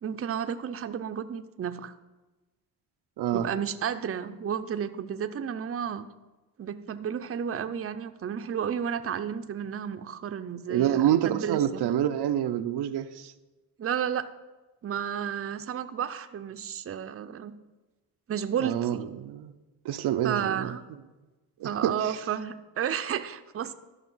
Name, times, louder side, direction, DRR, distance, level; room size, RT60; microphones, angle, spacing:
voice 1, 0.0-1.9 3.3-6.1 6.6-11.9 13.8-14.3 14.8-17.6 18.3-19.0 20.2-20.8 21.6-23.7, right 8 dB, 35° right, 0.6 m, -32 dB
voice 2, 3.2-3.5 10.7-13.3 18.6-19.5 19.8-20.7 21.6-22.0, right 11 dB, 80° right, 0.6 m, -27 dB
12.5 x 5.4 x 5.5 m
cardioid pair, 95°, 39 cm